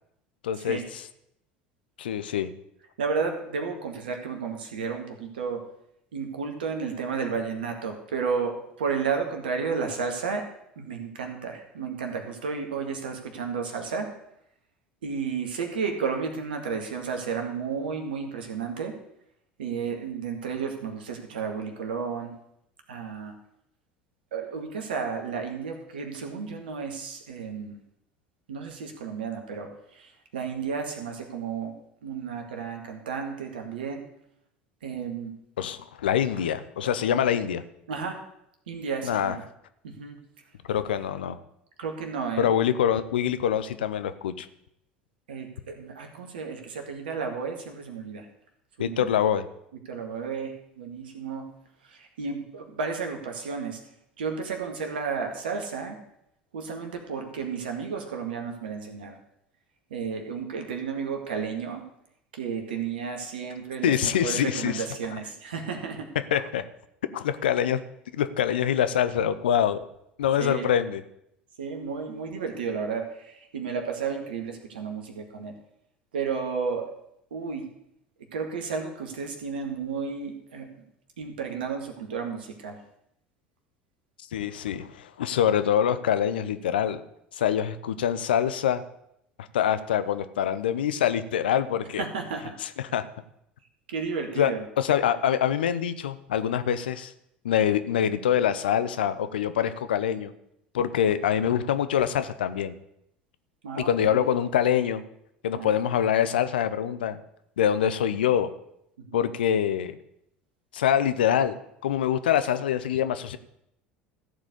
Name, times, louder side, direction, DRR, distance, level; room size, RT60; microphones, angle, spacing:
voice 1, 0.4-1.0 2.0-2.5 35.6-37.6 39.0-39.3 40.7-41.4 42.4-44.5 48.8-49.5 63.8-64.8 66.3-66.6 67.1-67.8 68.1-69.8 70.2-71.0 84.3-87.0 87.4-88.8 89.4-92.0 92.6-93.1 94.4-97.1 97.4-100.3 100.7-102.8 103.8-105.0 105.4-107.2 107.6-108.5 109.1-110.0 110.7-111.5 111.8-113.4, left 9 dB, 75° left, 12 dB, 0.7 m, -25 dB
voice 2, 3.0-5.6 6.1-10.5 10.8-14.1 15.0-18.9 19.6-22.3 22.9-23.3 24.3-27.8 28.5-31.7 32.0-34.0 34.8-35.3 37.9-38.2 38.7-39.4 39.8-40.2 41.8-42.5 45.3-48.3 48.8-49.0 49.9-51.5 51.8-53.8 54.2-56.0 56.5-59.2 59.9-61.8 62.3-66.1 70.4-70.7 71.6-75.5 76.1-76.9 77.3-77.7 78.3-80.7 81.2-82.8 92.0-92.6 93.9-94.7 103.6-104.2 105.6-105.8 109.0-109.3, right 5 dB, 75° right, 4 dB, 2.0 m, -32 dB
14.0 x 4.9 x 8.2 m, 0.78 s
figure-of-eight pair, 70°, 5 cm